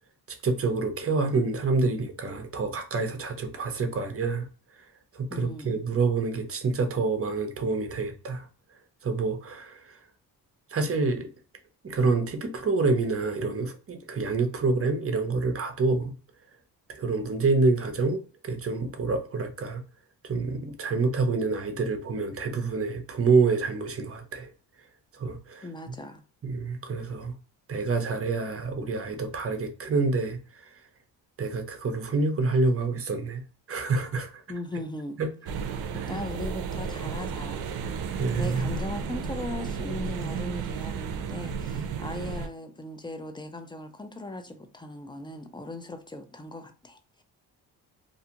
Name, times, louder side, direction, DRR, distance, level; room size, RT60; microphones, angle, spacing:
voice 1, 0.4-4.5 5.1-8.5 9.0-10.0 10.7-11.3 11.8-16.1 16.9-19.8 20.2-24.5 25.1-25.7 26.4-27.3 27.7-30.7 31.4-33.4 33.7-34.4 35.2-35.3 35.9-36.1 38.1-38.8, right 3 dB, 35° right, 0.7 m, -27 dB
voice 2, 5.3-5.8 25.6-26.2 34.5-35.2 35.9-37.7 38.4-47.2, left 1 dB, 15° left, 0.4 m, -38 dB
sound 1, 35.5-42.5, right 6 dB, 70° right, 0.5 m, -33 dB
2.6 x 2.3 x 2.8 m
cardioid pair, 80°, 38 cm